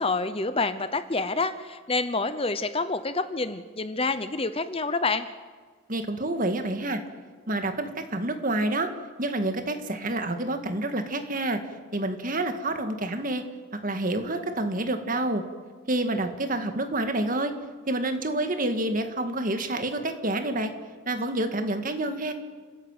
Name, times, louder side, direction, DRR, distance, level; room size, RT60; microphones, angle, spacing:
voice 1, 0.0-5.3, left 3 dB, 25° left, 12 dB, 0.8 m, -28 dB
voice 2, 5.9-7.0 7.5-8.9 9.2-11.6 11.9-13.4 13.7-15.4 15.9-17.5 17.9-20.7 21.1-22.3, right 1 dB, 40° right, 7 dB, 1.9 m, -28 dB
29.5 x 14.0 x 9.1 m, 1.5 s
head